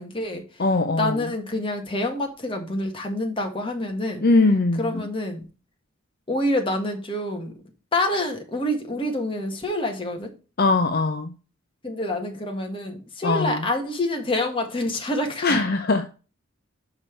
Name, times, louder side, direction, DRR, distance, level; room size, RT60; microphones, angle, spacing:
voice 1, 0.0-0.6 1.0-4.3 4.8-5.4 6.3-7.5 7.9-10.3 11.8-15.6, left 1 dB, 25° left, 1.6 m, -27 dB
voice 2, 0.6-1.2 4.2-5.1 10.6-11.3 13.2-13.7 15.4-16.1, left 3 dB, 45° left, 0.7 m, -21 dB
5.9 x 5.4 x 4.5 m
head